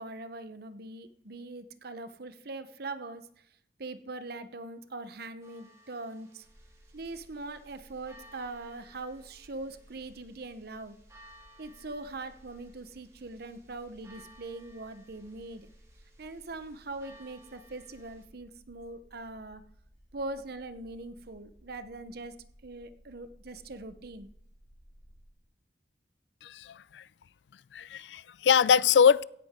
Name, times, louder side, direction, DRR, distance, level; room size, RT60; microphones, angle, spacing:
voice 1, 0.0-3.4 3.8-6.5 6.9-11.0 11.6-15.7 16.2-19.6 20.1-22.4 22.6-24.3, right 2 dB, 65° right, 0.9 m, -42 dB
sound 1, 5.4-18.2, equal, 20° right, 3.6 m, -60 dB
sound 2, 6.4-25.3, equal, 50° left, 6.4 m, -59 dB
voice 2, 26.4-27.0 27.7-29.2, left 7 dB, 85° left, 0.4 m, -23 dB
16.5 x 10.0 x 3.7 m
head